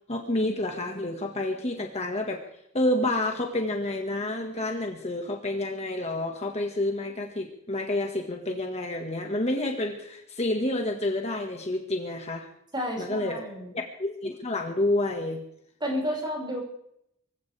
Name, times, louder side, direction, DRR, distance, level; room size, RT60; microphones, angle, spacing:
voice 1, 0.1-2.4 2.7-12.5 13.0-13.4 13.7-15.4, left 1 dB, 30° left, 2 dB, 1.7 m, -29 dB
voice 2, 12.7-13.7 15.8-16.6, equal, 20° right, -2 dB, 5.7 m, -31 dB
24.0 x 16.5 x 3.5 m, 0.74 s
head